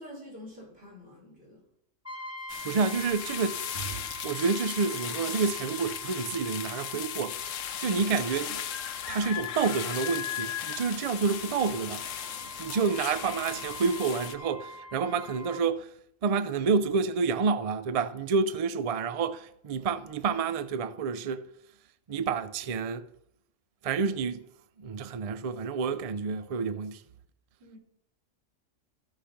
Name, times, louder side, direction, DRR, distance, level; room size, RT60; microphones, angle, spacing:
voice 1, 0.0-1.6 12.4-12.9 27.6-27.8, left 1 dB, 50° right, 4.9 m, -48 dB
Brass instrument, 2.0-15.7, left 1 dB, 5° right, 1.4 m, -45 dB
sound 1, 2.5-14.4, left 10 dB, 80° left, 1.1 m, -37 dB
voice 2, 2.6-7.4 7.8-8.6 9.1-12.3 12.6-15.9 16.2-21.5 22.1-23.1 23.8-24.5 24.8-27.0, right 5 dB, 65° right, 0.3 m, -29 dB
14.5 x 4.9 x 5.7 m
omnidirectional pair, 1.3 m